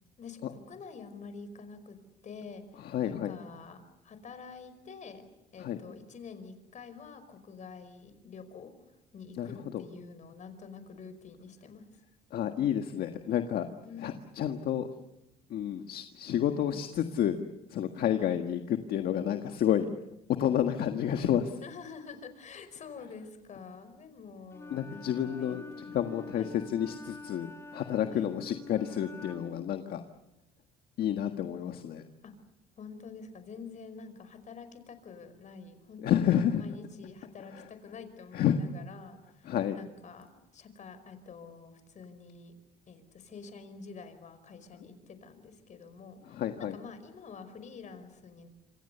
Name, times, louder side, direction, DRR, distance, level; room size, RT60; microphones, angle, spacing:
voice 1, 0.2-2.0 2.2-8.7 9.1-11.9 13.8-14.2 18.2-18.3 21.6-26.0 26.3-26.5 28.1-28.3 32.2-32.3 32.8-42.5 42.9-48.5, left 5 dB, 45° left, 10 dB, 5.2 m, -47 dB
voice 2, 2.8-3.3 5.6-5.8 9.4-9.5 12.3-13.7 14.0-14.9 15.5-17.4 17.7-19.9 20.4-21.6 24.7-25.6 25.9-26.4 26.7-30.0 31.0-32.0 36.0-36.6 38.3-38.6 39.5-39.8 46.3-46.8, left 10 dB, 65° left, 6 dB, 1.7 m, -30 dB
Wind instrument woodwind instrument, 24.5-29.7, left 2 dB, 15° left, 2.5 m, -46 dB
27.5 x 26.5 x 7.0 m, 0.90 s
cardioid pair, 110°, 17 cm